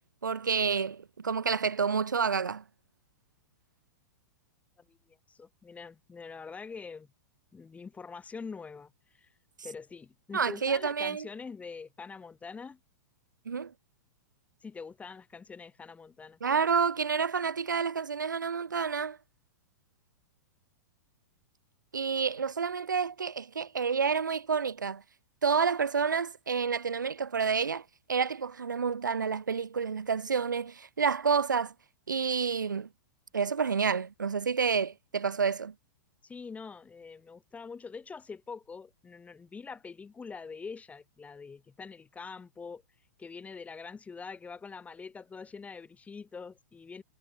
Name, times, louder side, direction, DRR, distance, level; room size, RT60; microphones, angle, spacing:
voice 1, 0.2-2.6 10.3-11.3 13.5-13.7 16.4-19.2 21.9-25.0 25.4-31.7 32.1-32.9 33.3-35.7, right 6 dB, 90° right, 4.3 m, -29 dB
voice 2, 4.9-7.1 7.5-9.3 9.6-12.8 14.6-16.4 36.2-42.8 43.2-47.0, left 5 dB, 15° left, 4.5 m, -44 dB
hypercardioid pair, 115°, 10 cm